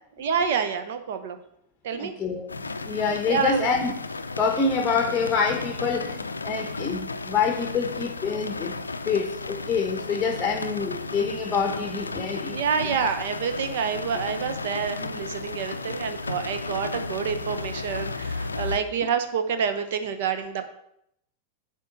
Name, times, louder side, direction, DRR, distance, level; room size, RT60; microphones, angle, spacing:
voice 1, 0.2-1.4 1.8-2.1 3.3-3.6 12.5-20.7, right 7 dB, 55° right, 8 dB, 0.8 m, -28 dB
voice 2, 1.9-2.5 2.8-3.9 4.3-8.8 9.0-12.6 13.0-13.1, left 5 dB, 20° left, 3 dB, 1.0 m, -26 dB
sound 1, 2.5-18.8, left 3 dB, 80° left, 0.4 m, -34 dB
8.2 x 3.8 x 6.6 m, 0.74 s
figure-of-eight pair, 90°, 0 cm